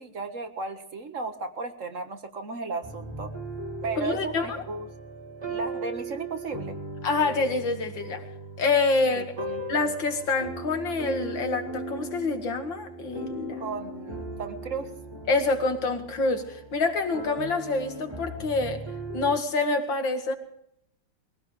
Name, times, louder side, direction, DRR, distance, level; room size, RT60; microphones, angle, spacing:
voice 1, 0.0-3.3 3.8-4.9 5.5-6.8 9.1-9.6 13.6-14.9, right 4 dB, 45° right, 7 dB, 1.8 m, -35 dB
sound 1, 2.8-19.4, right 2 dB, 15° right, 1.3 m, -38 dB
voice 2, 4.0-4.6 7.0-8.2 8.6-9.3 9.7-13.6 15.3-18.8 19.1-20.3, left 3 dB, 85° left, 5 dB, 2.7 m, -26 dB
22.5 x 16.5 x 3.4 m, 0.75 s
omnidirectional pair, 2.0 m